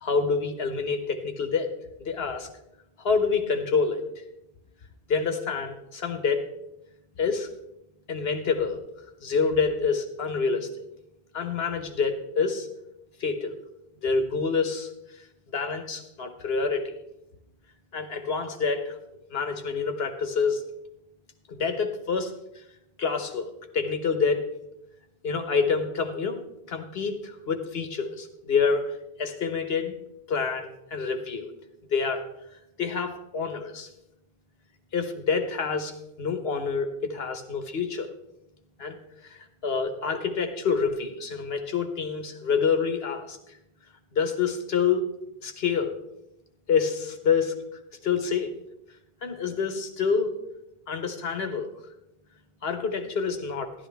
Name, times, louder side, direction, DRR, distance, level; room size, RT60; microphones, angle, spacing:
voice 1, 0.0-1.7 2.0-2.5 3.0-4.2 5.1-6.5 7.2-7.5 8.1-8.8 9.2-10.9 11.3-12.7 13.2-13.5 14.0-15.2 15.5-16.9 17.9-19.0 19.3-20.6 21.5-22.3 23.0-24.4 25.2-26.4 26.7-29.9 30.3-31.5 31.9-32.3 32.8-33.9 34.9-38.1 38.8-39.0 39.2-43.4 44.1-45.0 45.4-46.0 46.7-47.5 48.0-48.5 49.2-50.3 50.9-51.7 52.6-53.7, left 5 dB, 75° left, 7 dB, 1.4 m, -27 dB
12.5 x 11.5 x 3.4 m, 0.84 s
omnidirectional pair, 1.0 m